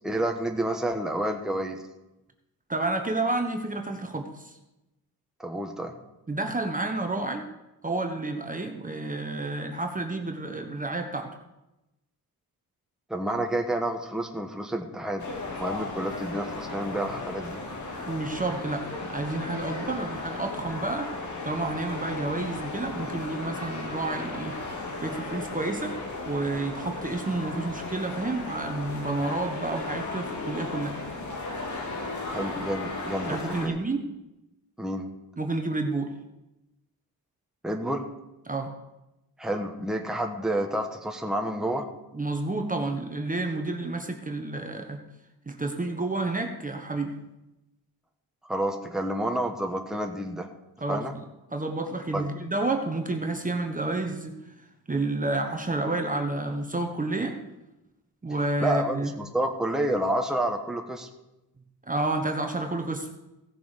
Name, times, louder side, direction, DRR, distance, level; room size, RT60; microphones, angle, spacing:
voice 1, 0.0-1.8 5.4-5.9 13.1-15.3 15.6-17.6 32.3-33.8 34.8-35.1 37.6-38.1 39.4-41.9 48.4-50.5 50.9-51.1 52.1-52.3 58.6-61.1, right 1 dB, ahead, 2 dB, 1.3 m, -29 dB
voice 2, 2.7-4.6 6.3-7.4 7.8-11.3 18.1-21.1 21.4-24.6 25.0-26.0 26.3-31.0 33.3-34.0 35.4-36.1 38.5-38.7 42.1-45.0 45.5-47.1 50.8-54.4 54.9-57.4 58.2-59.1 61.9-63.1, right 2 dB, 20° right, 4 dB, 1.2 m, -30 dB
sound 1, 15.2-33.7, left 3 dB, 50° left, 2.3 m, -35 dB
16.5 x 6.9 x 5.1 m, 0.96 s
cardioid pair, 95°, 38 cm